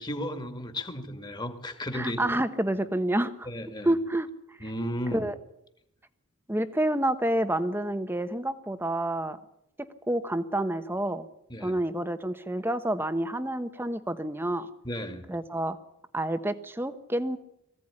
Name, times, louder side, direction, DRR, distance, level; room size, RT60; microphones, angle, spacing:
voice 1, 0.0-2.2 3.5-4.0 4.6-5.3 11.5-11.8 14.8-15.2, equal, 20° left, 7 dB, 2.2 m, -34 dB
voice 2, 1.9-3.5 3.8-4.7 5.1-5.3 6.5-9.4 10.1-11.3 11.6-14.7 15.3-15.8 16.1-17.4, right 1 dB, 10° right, 11 dB, 1.0 m, -28 dB
22.5 x 16.0 x 9.9 m, 0.83 s
head